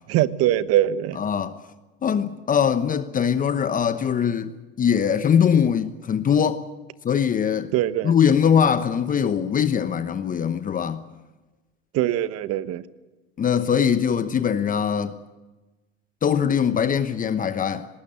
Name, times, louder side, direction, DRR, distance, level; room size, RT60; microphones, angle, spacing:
voice 1, 0.1-1.2 7.7-8.1 11.9-12.8, right 13 dB, 50° right, 1.1 m, -22 dB
voice 2, 1.2-1.5 2.0-6.6 7.0-7.7 8.0-11.0 13.4-15.1 16.2-17.9, left 8 dB, 25° left, 1.0 m, -22 dB
19.0 x 19.0 x 8.7 m
supercardioid pair, 110°, 31 cm